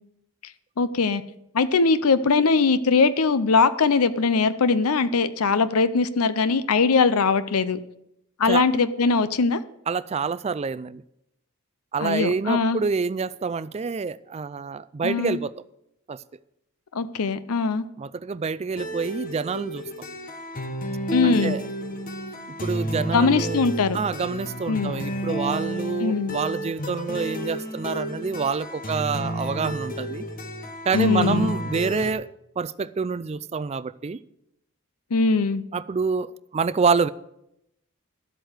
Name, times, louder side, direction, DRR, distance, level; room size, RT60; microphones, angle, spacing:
voice 1, 0.8-1.2 1.5-7.8 8.4-9.6 12.0-12.8 15.0-15.4 16.9-17.8 21.1-21.6 23.1-24.0 24.7-24.9 26.0-26.3 30.9-31.5 35.1-35.6, left 4 dB, 75° left, 14 dB, 0.6 m, -21 dB
voice 2, 9.9-11.0 11.9-15.5 16.1-16.2 18.0-19.8 21.2-21.6 22.6-23.7 23.9-30.2 30.9-32.3 32.6-34.2 35.7-37.1, right 5 dB, 30° right, 16 dB, 0.3 m, -27 dB
sound 1, 18.8-32.1, right 1 dB, 40° left, 1.1 m, -31 dB
12.0 x 8.0 x 6.5 m, 0.82 s
head